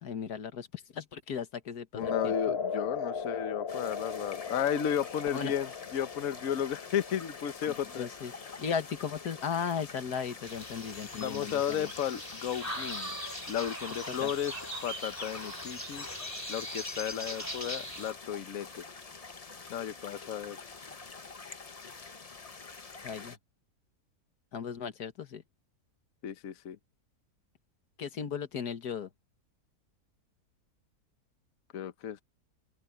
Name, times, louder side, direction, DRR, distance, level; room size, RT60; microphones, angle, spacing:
voice 1, 0.0-2.4 5.3-5.5 8.0-8.3 8.6-11.9 14.2-14.3 23.0-23.4 24.5-25.4 28.0-29.1, left 7 dB, 85° left, 1.9 m, -36 dB
voice 2, 1.9-8.1 11.2-13.1 13.5-14.5 14.8-16.0 16.5-18.8 19.7-20.6 26.2-26.8 31.7-32.2, left 9 dB, 65° left, 1.3 m, -34 dB
sound 1, 2.0-10.4, left 6 dB, 45° left, 1.1 m, -38 dB
sound 2, 3.7-23.4, left 4 dB, 30° left, 0.8 m, -46 dB
sound 3, 10.4-18.1, equal, 10° left, 2.6 m, -40 dB
open air
omnidirectional pair, 1.6 m